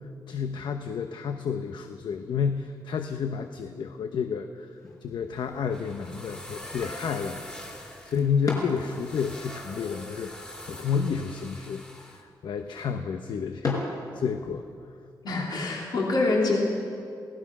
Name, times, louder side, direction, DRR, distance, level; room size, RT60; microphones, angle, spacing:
voice 1, 0.3-4.7 5.0-13.9 14.1-14.6, left 6 dB, 80° left, 7 dB, 0.9 m, -30 dB
sound 1, 4.7-14.7, left 2 dB, 50° left, 5.2 m, -41 dB
sound 2, 5.4-12.2, left 1 dB, 15° left, 2.4 m, -43 dB
voice 2, 15.2-16.6, left 3 dB, 65° left, -2 dB, 3.3 m, -25 dB
26.5 x 18.0 x 6.1 m, 2.4 s
wide cardioid pair, 150°, 8 cm